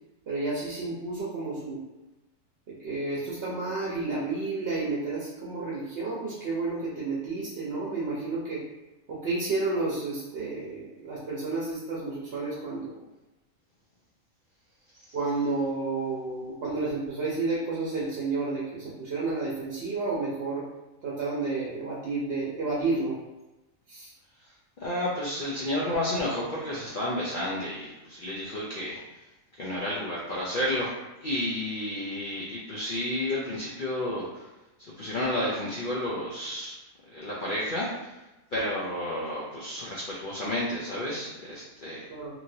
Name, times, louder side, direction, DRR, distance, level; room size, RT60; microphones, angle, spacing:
voice 1, 0.3-1.8 2.7-8.6 9.1-13.0 15.1-20.7 21.0-23.2 23.9-24.1 42.1-42.4, right 3 dB, 55° right, -6 dB, 0.8 m, -31 dB
voice 2, 24.8-29.0 29.6-30.9 31.2-34.5 34.8-36.7 37.1-38.1 38.5-42.1, left 1 dB, 65° left, -6 dB, 0.5 m, -31 dB
3.0 x 2.6 x 2.6 m, 1.0 s
omnidirectional pair, 1.5 m